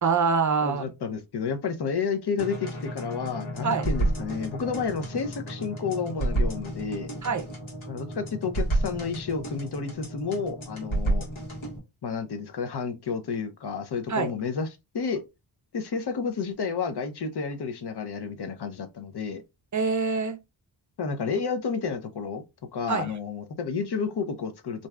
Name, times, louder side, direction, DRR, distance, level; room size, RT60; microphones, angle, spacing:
voice 1, 0.0-0.9 3.6-3.9 7.2-7.4 14.1-14.3 19.7-20.4 22.9-23.1, right 5 dB, 40° right, 0.5 m, -25 dB
voice 2, 0.6-7.1 7.9-11.3 12.0-14.7 14.9-15.2 15.7-19.4 21.0-22.4 22.7-24.9, left 5 dB, 55° left, 0.7 m, -31 dB
sound 1, 2.4-11.8, right 1 dB, 80° left, 1.3 m, -31 dB
2.6 x 2.3 x 3.2 m
wide cardioid pair, 115°, 47 cm